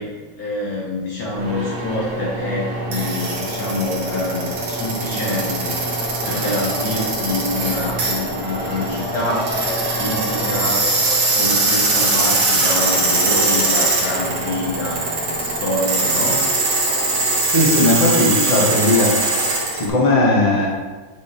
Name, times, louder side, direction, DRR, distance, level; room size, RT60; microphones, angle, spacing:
voice 1, 0.0-5.8 6.2-11.0 11.4-16.4, left 2 dB, 60° left, -4 dB, 1.3 m, -26 dB
sound 1, 1.3-19.9, right 2 dB, 85° right, 2.0 m, -21 dB
Race car auto racing / Accelerating revving vroom, 5.8-11.5, equal, 20° right, 1.2 m, -32 dB
voice 2, 17.5-19.4 19.7-20.7, left 1 dB, 25° left, -3 dB, 1.1 m, -17 dB
6.7 x 5.3 x 2.9 m, 1.3 s
omnidirectional pair, 2.0 m